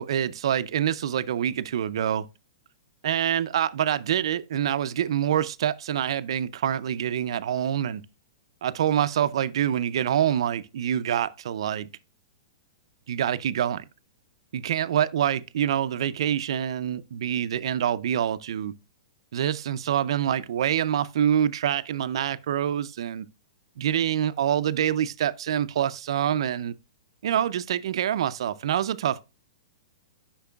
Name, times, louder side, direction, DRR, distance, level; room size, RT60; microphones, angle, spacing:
voice 1, 0.0-2.3 3.0-8.0 8.6-11.9 13.1-13.8 14.5-18.7 19.3-23.3 23.8-26.7 27.2-29.2, right 10 dB, 70° right, 0.4 m, -26 dB
8.2 x 5.8 x 2.3 m
hypercardioid pair, 150°, 3 cm